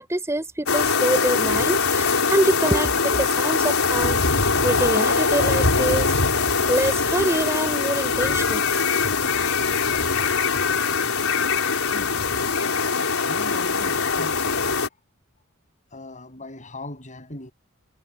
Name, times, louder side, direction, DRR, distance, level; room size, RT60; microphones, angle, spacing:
voice 1, 0.0-8.6, right 1 dB, 15° right, 6.2 m, -25 dB
sound 1, 0.7-14.9, left 4 dB, 85° left, 4.5 m, -22 dB
voice 2, 11.9-12.2 13.2-14.6 15.9-17.5, left 2 dB, 35° left, 7.7 m, -39 dB
head